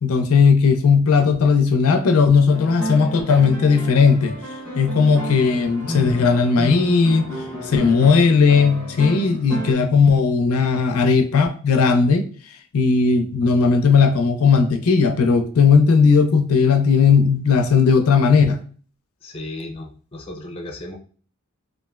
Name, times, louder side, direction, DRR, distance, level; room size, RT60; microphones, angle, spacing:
voice 1, 0.0-4.4 4.8-7.3 7.7-12.2 12.7-18.6, left 5 dB, 85° left, 7 dB, 0.4 m, -16 dB
sound 1, 2.5-9.7, right 1 dB, 10° right, 1.1 m, -31 dB
voice 2, 19.2-21.0, left 1 dB, 25° left, 1 dB, 0.5 m, -35 dB
3.0 x 2.5 x 2.3 m, 0.41 s
head